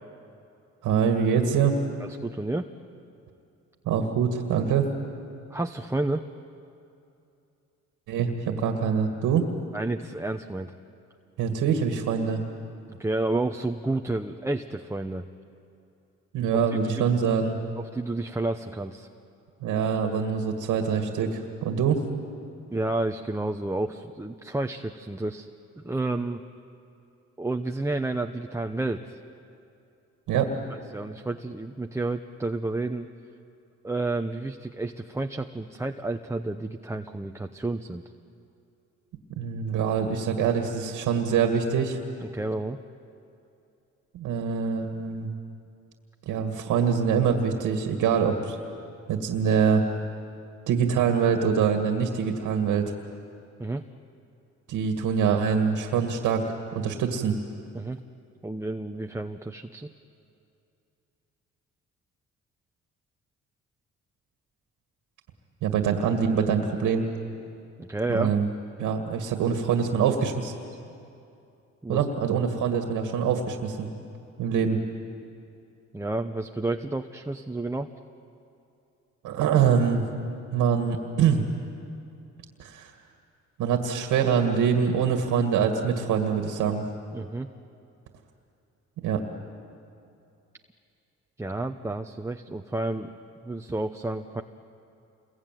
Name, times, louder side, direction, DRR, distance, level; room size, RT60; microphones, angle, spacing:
voice 1, 0.8-1.8 3.9-4.9 8.1-9.5 11.4-12.4 16.3-17.6 19.6-22.0 30.3-30.5 39.4-42.0 44.1-45.3 46.3-48.6 49.1-49.8 50.7-52.9 54.7-56.4 56.7-57.4 65.6-67.1 68.1-68.5 68.8-70.5 71.9-73.9 74.4-74.8 79.2-80.0 80.5-81.4 82.6-82.9 83.6-86.8 89.0-89.2, right 7 dB, 90° right, 5 dB, 2.1 m, -24 dB
voice 2, 2.0-2.7 5.5-6.2 9.7-10.7 12.9-15.3 17.0-17.1 17.9-19.1 22.7-25.5 25.8-26.4 27.4-29.2 30.9-33.1 33.8-38.0 42.2-42.8 53.6-53.8 57.7-58.0 58.4-59.9 67.8-68.3 71.8-72.0 75.9-77.9 86.6-86.7 87.1-87.5 91.4-93.1 93.4-94.4, right 2 dB, 10° right, 5 dB, 0.9 m, -30 dB
28.5 x 22.0 x 9.2 m, 2.6 s
cardioid pair, 90°, 30 cm